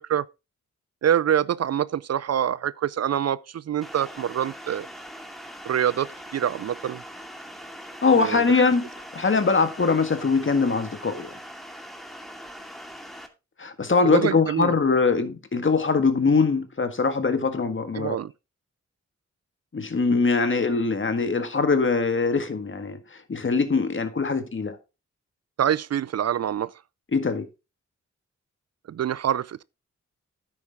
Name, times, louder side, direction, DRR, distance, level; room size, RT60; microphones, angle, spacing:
voice 1, 1.0-4.9 5.7-7.0 8.1-8.4 14.0-14.7 18.0-18.3 25.6-26.7 28.9-29.6, right 10 dB, 55° right, 0.4 m, -25 dB
sound 1, 3.8-13.3, equal, ahead, 2.2 m, -42 dB
voice 2, 8.0-11.3 13.6-18.2 19.7-24.8 27.1-27.5, left 4 dB, 40° left, 1.7 m, -22 dB
9.9 x 8.3 x 3.5 m
cardioid pair, 70°, 30 cm